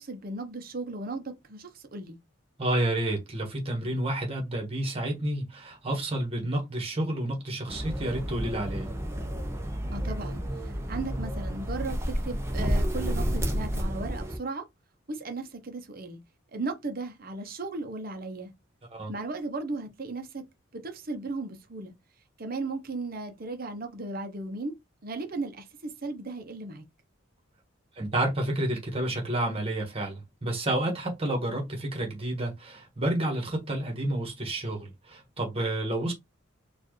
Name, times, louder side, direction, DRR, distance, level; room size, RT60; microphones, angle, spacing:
voice 1, 0.0-2.2 9.9-14.6 15.1-16.2 16.5-18.5 19.1-20.4 20.7-21.9 22.4-24.7 25.0-26.8, right 3 dB, 45° right, 0.7 m, -36 dB
voice 2, 2.6-8.9 18.9-19.1 28.0-36.1, right 1 dB, 30° right, 1.4 m, -30 dB
sound 1, 7.7-14.4, equal, 15° right, 0.7 m, -31 dB
4.4 x 2.5 x 3.1 m
head